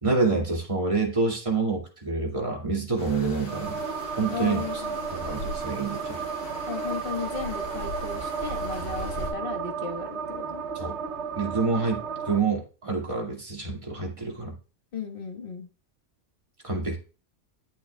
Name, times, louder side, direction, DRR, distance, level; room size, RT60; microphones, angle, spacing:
voice 1, 0.0-3.8 4.2-4.6 5.2-6.2 10.7-11.0 11.4-14.6 16.6-17.0, right 4 dB, 20° right, -1 dB, 2.4 m, -27 dB
sound 1, 3.0-9.3, left 1 dB, 75° left, 3.2 m, -39 dB
sound 2, 3.5-12.4, right 6 dB, 55° right, 0.9 m, -33 dB
voice 2, 4.3-5.0 6.7-10.6 14.9-15.7, left 5 dB, 35° left, 3 dB, 1.6 m, -35 dB
10.5 x 8.5 x 2.3 m, 0.35 s
omnidirectional pair, 1.6 m